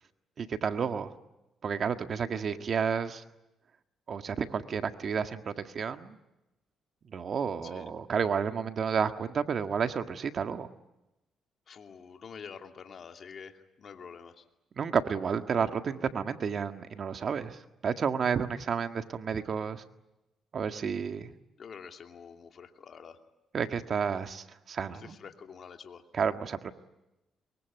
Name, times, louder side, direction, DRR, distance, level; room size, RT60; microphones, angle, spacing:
voice 1, 0.4-1.1 1.6-3.2 4.1-6.2 7.1-10.7 14.8-17.6 17.8-19.8 20.5-21.3 23.5-25.2 26.1-26.7, right 6 dB, 50° right, 8 dB, 1.8 m, -31 dB
voice 2, 11.7-14.4 21.6-23.2 24.9-26.0, left 6 dB, 50° left, 5 dB, 2.7 m, -47 dB
23.5 x 23.0 x 9.4 m, 0.95 s
cardioid pair, 90°, 0 cm